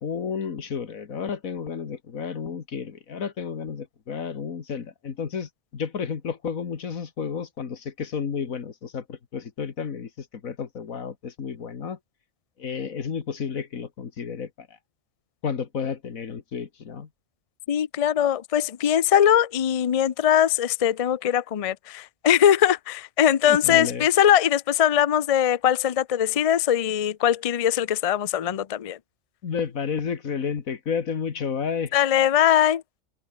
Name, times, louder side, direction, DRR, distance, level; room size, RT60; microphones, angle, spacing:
voice 1, 0.0-12.0 12.6-14.7 15.4-17.1 23.4-24.1 29.4-31.9, left 6 dB, 90° left, 2.0 m, -31 dB
voice 2, 17.7-29.0 31.9-32.8, left 10 dB, 55° left, 0.4 m, -21 dB
omnidirectional pair, 1.4 m